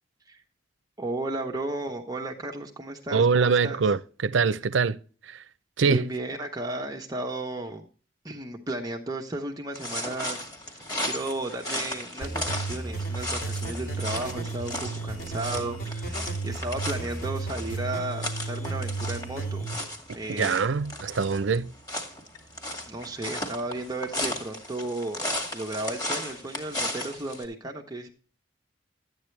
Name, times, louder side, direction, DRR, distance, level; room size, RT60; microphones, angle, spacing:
voice 1, 1.0-3.9 5.8-7.9 8.2-19.7 20.1-20.7 22.8-25.2 25.5-28.1, right 2 dB, 20° right, 0.9 m, -34 dB
voice 2, 3.1-5.0 5.3-5.4 5.8-6.1 20.3-21.7, right 5 dB, 85° right, 0.6 m, -24 dB
sound 1, 9.7-27.4, left 1 dB, 20° left, 2.2 m, -35 dB
sound 2, 12.2-19.7, right 3 dB, 50° left, 3.2 m, -33 dB
12.0 x 9.2 x 3.2 m
head